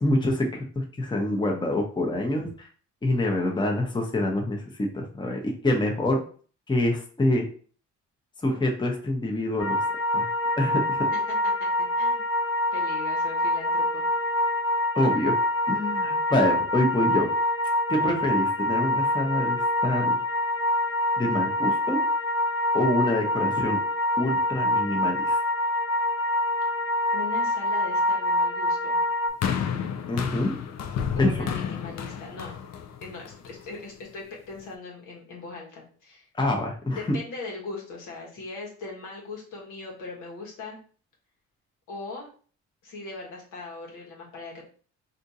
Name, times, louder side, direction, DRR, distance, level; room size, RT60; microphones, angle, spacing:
voice 1, 0.0-2.7 3.0-6.2 6.7-7.4 8.4-9.8 10.1-10.3 10.6-10.8 15.0-15.3 15.7-17.3 17.9-20.2 21.2-22.0 22.7-23.8 24.2-25.4 30.1-30.5 31.2-31.5 36.4-37.0, left 1 dB, 15° left, 1 dB, 0.8 m, -26 dB
sound 1, 9.6-29.3, left 1 dB, 5° right, 1.2 m, -25 dB
voice 2, 11.1-12.2 12.7-14.0 27.1-29.0 31.2-32.6 33.0-36.3 36.9-40.8 41.9-42.3 42.8-44.6, left 3 dB, 85° left, -1 dB, 1.3 m, -39 dB
sound 2, 29.4-33.8 34.6-34.7, left 7 dB, 60° left, 0.6 m, -31 dB
3.4 x 2.6 x 2.7 m, 0.42 s
cardioid pair, 90°, 30 cm